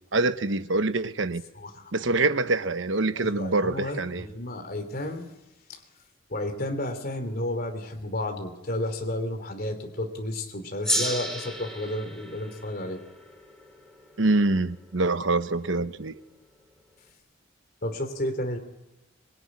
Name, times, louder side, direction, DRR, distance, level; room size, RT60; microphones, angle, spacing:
voice 1, 0.1-1.4 1.9-4.3 14.2-16.2, right 2 dB, 75° right, 1.1 m, -25 dB
voice 2, 1.5-1.9 3.1-5.3 5.7-5.8 6.3-13.0 17.8-18.6, left 1 dB, 50° left, 3.0 m, -32 dB
Gong, 10.8-15.6, equal, 5° left, 4.1 m, -33 dB
24.5 x 21.0 x 9.7 m
head